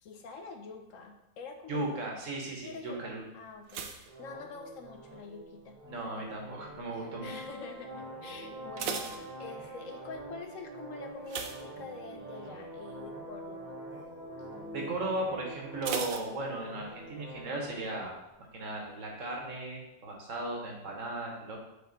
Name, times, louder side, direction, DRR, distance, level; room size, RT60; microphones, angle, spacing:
voice 1, 0.0-2.0 2.6-5.8 7.0-13.7, left 4 dB, 75° left, 5 dB, 1.1 m, -46 dB
voice 2, 1.7-3.2 5.9-7.3 14.7-21.6, right 2 dB, 70° right, 0 dB, 1.6 m, -36 dB
sound 1, 3.7-5.2 5.4-5.9 6.5-6.9 7.2-7.3 7.7-7.8 8.4-10.0 11.2-12.4 12.7-13.0 13.4-13.5 15.8-17.0 17.3-17.4, right 6 dB, 85° right, 1.1 m, -39 dB
sound 2, 4.1-18.1, right 1 dB, 35° right, 1.1 m, -45 dB
Male speech man speaking, 7.9-10.1 11.1-13.0 13.9-15.9, right 1 dB, 10° right, 1.2 m, -55 dB
5.8 x 4.7 x 3.9 m, 0.91 s
omnidirectional pair, 1.4 m